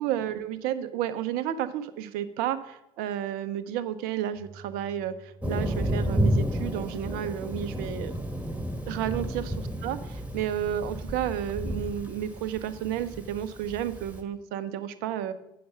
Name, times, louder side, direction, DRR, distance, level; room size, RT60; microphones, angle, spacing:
voice 1, 0.0-8.1 8.9-9.5 9.8-15.3, right 11 dB, 70° right, 12 dB, 0.7 m, -32 dB
sound 1, 4.3-11.2, right 2 dB, 85° right, 1.1 m, -51 dB
Thunder, 5.4-14.2, equal, 10° right, 1.6 m, -31 dB
8.7 x 6.6 x 6.8 m, 0.87 s
hypercardioid pair, 55°, 16 cm